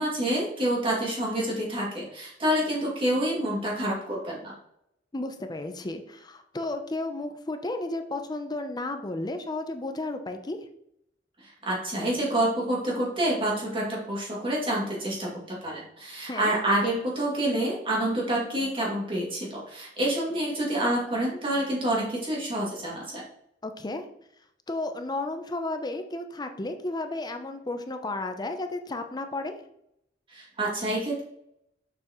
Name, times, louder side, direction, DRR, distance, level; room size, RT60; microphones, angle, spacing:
voice 1, 0.0-4.5 11.4-23.2 30.3-31.2, right 1 dB, 30° right, -4 dB, 2.3 m, -28 dB
voice 2, 5.1-10.6 16.3-16.5 23.6-24.1 24.7-29.5, left 2 dB, 25° left, 7 dB, 0.6 m, -33 dB
6.9 x 6.1 x 3.0 m, 0.76 s
head